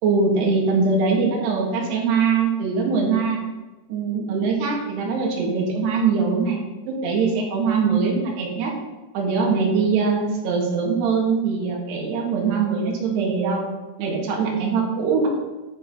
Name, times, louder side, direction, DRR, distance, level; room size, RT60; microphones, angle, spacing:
voice 1, 0.0-3.4 3.9-6.6 6.9-8.7 9.1-13.7 14.0-15.3, right 5 dB, 85° right, -1 dB, 3.9 m, -22 dB
11.5 x 5.6 x 5.5 m, 1.2 s
omnidirectional pair, 4.6 m